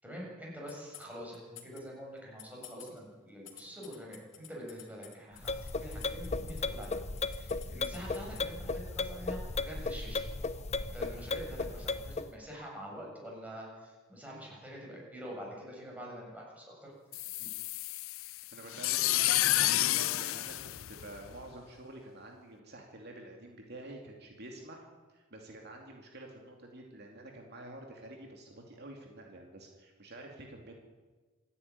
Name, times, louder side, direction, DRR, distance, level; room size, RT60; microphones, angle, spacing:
voice 1, 0.0-10.3 10.9-16.9 17.3-17.5, equal, 10° right, -2 dB, 6.9 m, -46 dB
sound 1, 0.7-1.8 2.2-8.4, left 11 dB, 70° left, 2.7 m, -51 dB
sound 2, 5.4-12.3, left 3 dB, 35° left, 0.8 m, -36 dB
sound 3, 17.1-21.5, left 15 dB, 90° left, 0.5 m, -30 dB
voice 2, 18.5-30.7, right 1 dB, 55° right, 1 dB, 2.7 m, -49 dB
26.5 x 10.0 x 9.6 m, 1.3 s
head